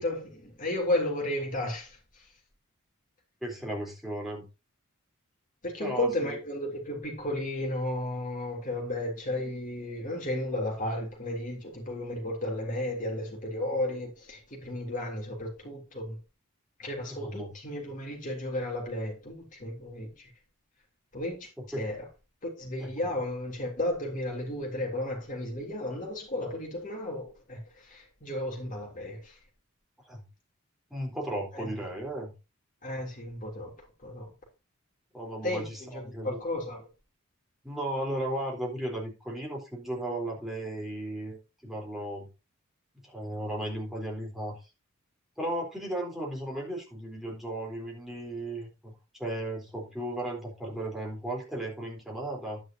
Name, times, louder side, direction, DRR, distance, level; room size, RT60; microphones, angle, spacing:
voice 1, 0.0-2.3 5.6-16.2 16.8-20.3 21.1-21.5 21.7-22.1 22.4-29.4 31.5-31.9 32.8-33.7 34.0-34.3 35.4-36.9, left 1 dB, 35° left, 3.4 m, -33 dB
voice 2, 3.4-4.4 5.8-6.4 17.1-17.5 22.8-22.9 30.1-30.2 30.9-32.3 35.1-36.4 37.6-42.3 43.0-44.6 45.4-48.9 49.2-52.6, right 1 dB, ahead, 4.0 m, -35 dB
10.5 x 10.0 x 2.9 m
head